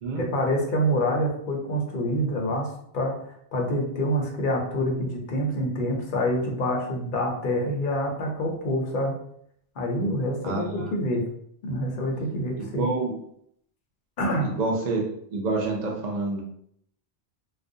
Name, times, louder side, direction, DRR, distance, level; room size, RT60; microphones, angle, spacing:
voice 1, 0.1-2.7 2.9-3.1 3.5-9.1 9.8-11.2 11.6-12.9 14.2-14.5, equal, 60° left, 0 dB, 0.7 m, -26 dB
voice 2, 10.4-10.9 12.6-13.1 14.4-15.0 15.3-16.4, right 3 dB, 55° right, 0 dB, 0.5 m, -28 dB
2.4 x 2.1 x 2.6 m, 0.69 s
omnidirectional pair, 1.1 m